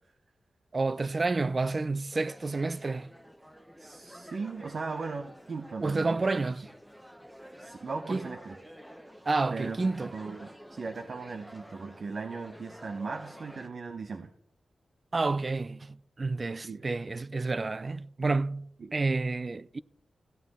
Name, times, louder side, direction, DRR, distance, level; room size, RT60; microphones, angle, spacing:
voice 1, 0.7-3.1 5.8-6.6 8.1-8.3 9.3-10.1 15.1-19.8, right 3 dB, 35° right, 0.3 m, -30 dB
sound 1, 2.1-13.7, equal, 5° right, 0.7 m, -50 dB
voice 2, 3.8-6.5 7.6-8.6 9.5-14.3 16.6-16.9 18.8-18.9, right 4 dB, 55° right, 0.7 m, -38 dB
15.0 x 9.5 x 3.7 m
wide cardioid pair, 120°, 0 cm